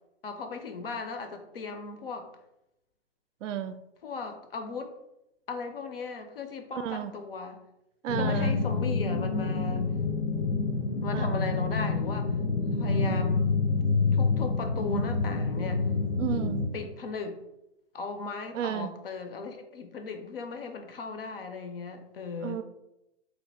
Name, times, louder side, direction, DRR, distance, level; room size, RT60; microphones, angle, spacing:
voice 1, 0.2-2.3 4.0-4.9 5.5-7.6 8.2-9.9 11.0-12.3 12.8-13.5 14.1-15.9 16.7-17.4 17.9-22.6, left 4 dB, 50° left, 7 dB, 0.5 m, -37 dB
voice 2, 3.4-3.8 6.7-7.2 8.0-8.6 11.1-11.4 12.9-13.2 16.2-16.7 18.5-18.9 22.4-22.6, right 10 dB, 80° right, 10 dB, 0.5 m, -32 dB
sound 1, 8.1-16.7, left 4 dB, 85° left, 0.8 m, -27 dB
3.2 x 2.4 x 3.9 m, 0.88 s
hypercardioid pair, 175°, 36 cm